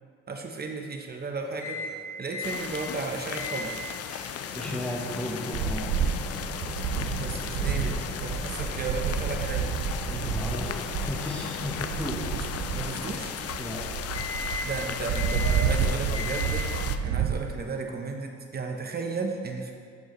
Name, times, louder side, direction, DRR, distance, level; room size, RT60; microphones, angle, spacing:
voice 1, 0.3-1.8 2.2-3.8 7.0-9.7 12.3-12.4 12.7-13.3 14.6-16.7 17.0-19.7, right 4 dB, 30° right, 3 dB, 1.0 m, -34 dB
Microwave oven, 1.6-2.0 2.3-2.6 3.3-3.7 4.1-13.8 14.1-14.8 15.1-15.8 16.1-16.8, left 2 dB, 25° left, 1.7 m, -38 dB
sound 1, 2.4-17.0, left 8 dB, 55° left, 0.5 m, -36 dB
voice 2, 4.5-6.0 9.0-9.1 10.1-12.3 13.6-13.8, left 1 dB, 5° left, -3 dB, 1.1 m, -34 dB
sound 2, 5.5-17.6, right 6 dB, 85° right, 0.5 m, -30 dB
12.0 x 4.7 x 3.1 m, 2.1 s
cardioid pair, 90°, 30 cm